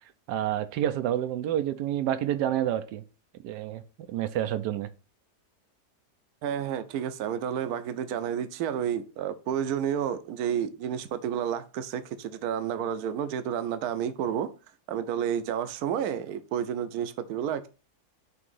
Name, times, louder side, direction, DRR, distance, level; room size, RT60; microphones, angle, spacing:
voice 1, 0.3-3.0 3.4-3.8 4.1-4.9, right 11 dB, 90° right, 1.2 m, -28 dB
voice 2, 6.4-14.5 14.9-17.7, right 9 dB, 75° right, 1.1 m, -30 dB
6.2 x 2.9 x 5.4 m
omnidirectional pair, 1.7 m